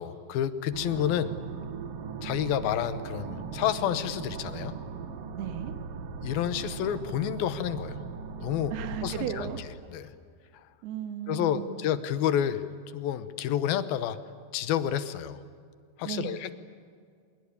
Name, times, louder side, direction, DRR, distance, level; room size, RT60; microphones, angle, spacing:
voice 1, 0.0-1.4 2.2-4.8 6.2-8.0 8.4-8.7 9.0-9.5 9.9-10.1 11.3-12.7 12.9-14.2 14.5-15.4 16.0-16.5, left 10 dB, 75° left, 12 dB, 2.7 m, -29 dB
sound 1, 0.7-9.6, right 5 dB, 60° right, 1.6 m, -38 dB
voice 2, 5.3-5.8 8.7-10.2 10.8-11.9 16.0-16.4, right 9 dB, 80° right, 7 dB, 3.6 m, -36 dB
25.0 x 22.5 x 8.5 m, 2.2 s
omnidirectional pair, 4.6 m